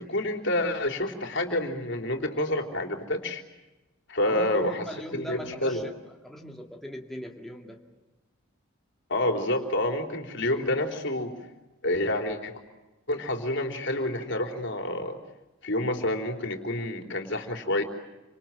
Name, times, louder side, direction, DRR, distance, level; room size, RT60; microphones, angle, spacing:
voice 1, 0.0-3.4 4.1-4.8 5.1-5.9 9.1-11.3 11.8-12.6 13.1-15.2 15.6-17.8, left 1 dB, 60° left, 4 dB, 3.7 m, -28 dB
voice 2, 4.2-5.9 6.2-7.8, equal, ahead, 0 dB, 2.2 m, -40 dB
29.5 x 26.5 x 7.6 m, 1.1 s
head